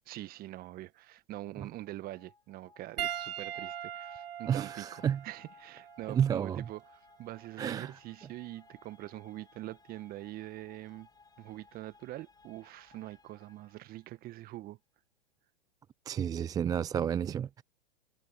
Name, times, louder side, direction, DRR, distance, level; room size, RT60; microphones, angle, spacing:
voice 1, 0.1-11.1 11.4-14.8, right 16 dB, 30° right, 1.4 m, -44 dB
sound 1, 1.6-14.4, left 5 dB, 15° left, 7.4 m, -61 dB
Piano, 3.0-7.6 8.6-8.8 10.7-10.8, right 10 dB, 75° right, 0.9 m, -41 dB
voice 2, 4.5-5.2 6.1-6.6 7.6-7.9 16.1-17.6, right 8 dB, 10° right, 0.4 m, -31 dB
hypercardioid pair, 110°, 30 cm